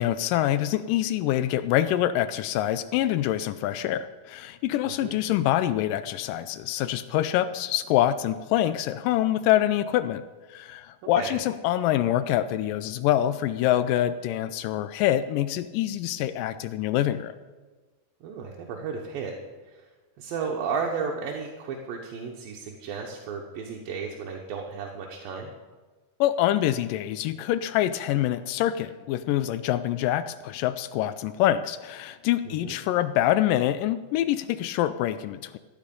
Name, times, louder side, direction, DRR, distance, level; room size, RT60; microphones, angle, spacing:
voice 1, 0.0-10.2 10.5-17.3 26.2-35.6, left 12 dB, 80° left, 13 dB, 2.1 m, -25 dB
voice 2, 4.8-5.2 11.2-11.4 18.2-19.3 19.7-19.8 20.2-25.5 32.5-32.8, right 5 dB, 85° right, 0 dB, 2.9 m, -33 dB
16.0 x 10.0 x 5.4 m, 1.3 s
omnidirectional pair, 4.0 m